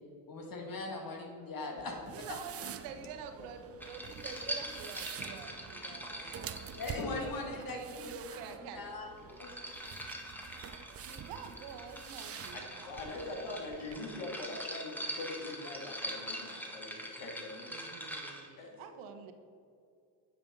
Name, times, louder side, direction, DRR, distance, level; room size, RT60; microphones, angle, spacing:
voice 1, 0.3-2.4 6.1-6.5 6.7-8.4 8.7-9.6, left 2 dB, 45° left, 2 dB, 2.2 m, -40 dB
voice 2, 1.4-1.8 2.1-6.7 7.2-8.9 10.9-13.0 17.7-19.3, right 6 dB, 75° right, 6 dB, 1.2 m, -48 dB
sound 1, 1.8-14.0, right 8 dB, 30° right, 0.5 m, -48 dB
sound 2, 3.8-7.7 9.0-18.5, equal, 5° left, 1.7 m, -43 dB
voice 3, 12.5-17.7 18.6-18.8, left 2 dB, 65° left, 1 dB, 2.2 m, -43 dB
9.3 x 5.7 x 5.3 m, 2.5 s
supercardioid pair, 70°, 50 cm